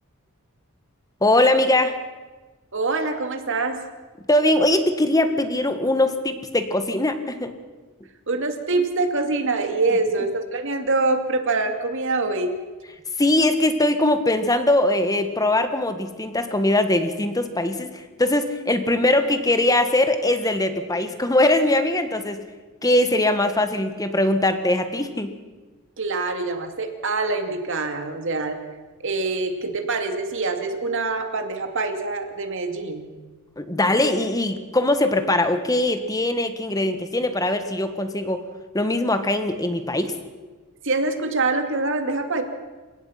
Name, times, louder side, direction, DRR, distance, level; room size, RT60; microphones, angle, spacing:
voice 1, 1.2-2.0 4.3-7.5 13.2-22.4 22.8-25.4 33.6-38.4 38.7-40.2, left 1 dB, 15° left, 8 dB, 1.5 m, -21 dB
voice 2, 2.7-3.8 8.3-12.5 26.0-28.6 29.0-33.1 40.8-42.4, right 3 dB, 60° right, 6 dB, 2.4 m, -25 dB
29.0 x 17.0 x 5.9 m, 1.3 s
head